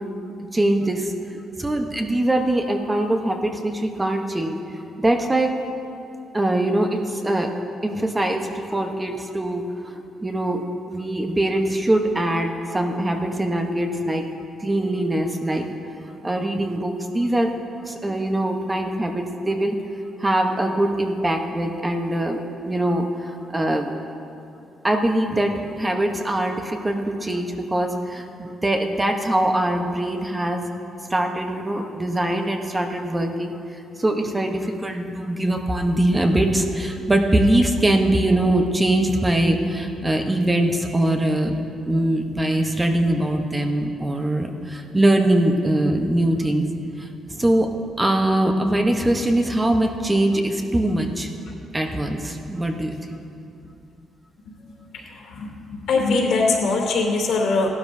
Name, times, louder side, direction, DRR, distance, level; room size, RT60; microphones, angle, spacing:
voice 1, 0.4-1.1 1.6-4.6 5.0-5.5 6.3-7.5 7.8-9.9 10.2-14.2 14.6-15.7 16.2-17.5 17.8-19.7 20.2-22.4 22.7-23.9 24.8-30.6 31.1-33.5 34.0-41.6 41.9-46.6 47.0-47.7 48.0-51.3 51.7-53.0 55.9-56.1, right 1 dB, 15° right, 3 dB, 1.0 m, -22 dB
voice 2, 54.9-57.7, left 3 dB, 75° left, 0 dB, 2.8 m, -22 dB
15.5 x 12.0 x 2.7 m, 2.6 s
cardioid pair, 90°, 0 cm